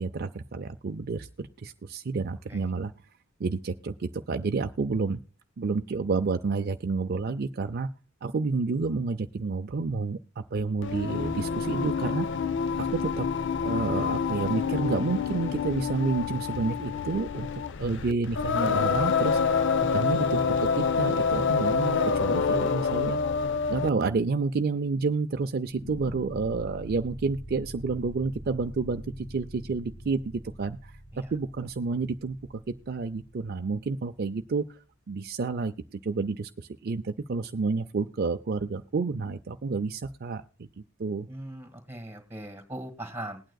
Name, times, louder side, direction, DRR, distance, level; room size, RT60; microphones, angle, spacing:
voice 1, 0.0-2.9 3.4-5.2 5.6-7.9 8.2-10.2 10.5-12.3 12.8-13.3 13.6-19.4 19.9-23.2 23.7-31.0 31.3-32.4 32.9-34.8 35.1-40.4 41.0-41.3, right 4 dB, 50° right, 7 dB, 0.4 m, -30 dB
Singing, 10.8-24.0, left 5 dB, 60° left, 0.5 m, -27 dB
sound 1, 25.7-34.8, equal, 35° left, 1.6 m, -45 dB
voice 2, 41.3-43.4, right 1 dB, 10° right, 6 dB, 1.8 m, -39 dB
20.5 x 9.0 x 2.3 m, 0.38 s
head